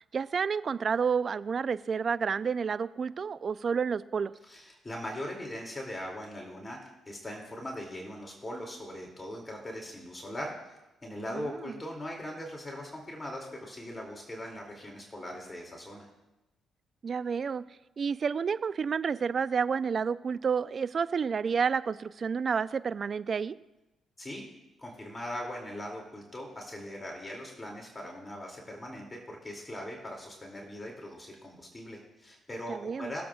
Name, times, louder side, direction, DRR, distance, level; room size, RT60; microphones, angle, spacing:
voice 1, 0.1-4.3 11.3-11.7 17.0-17.6 18.0-23.6 32.7-33.1, right 6 dB, 50° right, 16 dB, 0.4 m, -30 dB
voice 2, 4.4-10.5 11.0-16.1 24.2-24.4 24.8-33.2, left 1 dB, 25° left, -1 dB, 2.5 m, -40 dB
22.5 x 7.7 x 2.4 m, 1.0 s
supercardioid pair, 60°, 0 cm